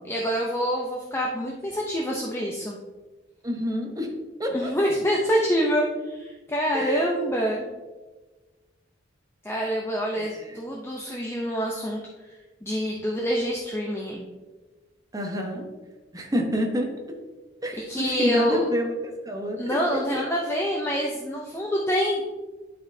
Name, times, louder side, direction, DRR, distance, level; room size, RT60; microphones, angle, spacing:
voice 1, 0.0-2.8 4.5-7.7 9.4-12.0 12.3-14.2 17.9-18.7 19.6-22.2, equal, 15° left, -2 dB, 0.6 m, -26 dB
voice 2, 3.4-4.1 4.4-4.7 6.7-7.1 10.1-10.6 15.1-15.7 16.1-17.2 17.6-20.2, equal, 20° right, 2 dB, 0.9 m, -29 dB
11.5 x 4.2 x 2.7 m, 1.3 s
head